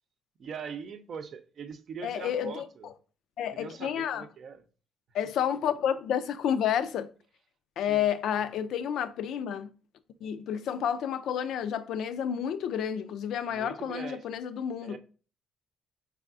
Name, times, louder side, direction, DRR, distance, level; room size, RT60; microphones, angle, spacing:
voice 1, 0.4-2.9 3.5-4.6 7.9-8.1 13.5-14.3 14.8-15.0, right 6 dB, 60° right, 0.5 m, -41 dB
voice 2, 2.0-2.7 3.4-4.2 5.1-7.1 7.8-9.7 10.2-15.0, left 9 dB, 75° left, 0.4 m, -30 dB
4.6 x 3.4 x 2.4 m
supercardioid pair, 70°, 0 cm